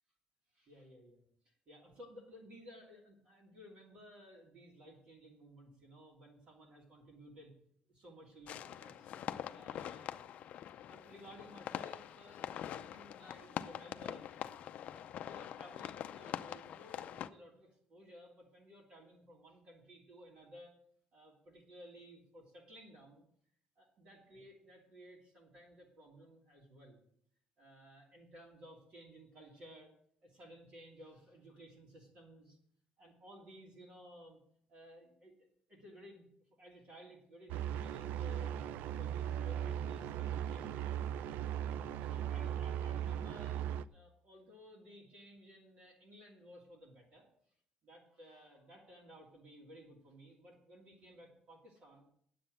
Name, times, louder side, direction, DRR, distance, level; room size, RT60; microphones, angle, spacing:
voice 1, 0.5-7.5 7.9-9.2 9.5-10.1 10.6-14.5 14.9-20.7 21.1-23.2 23.8-27.0 27.6-29.9 30.2-32.6 33.0-34.4 34.7-36.3 36.6-38.5 39.0-40.9 42.1-47.3 47.8-52.1, equal, 45° right, -3 dB, 2.7 m, -56 dB
sound 1, 8.5-17.3, left 10 dB, 50° left, 0.5 m, -44 dB
sound 2, 37.5-43.8, right 10 dB, 80° right, 0.4 m, -38 dB
9.9 x 7.6 x 7.8 m, 0.65 s
cardioid pair, 180°, 3 cm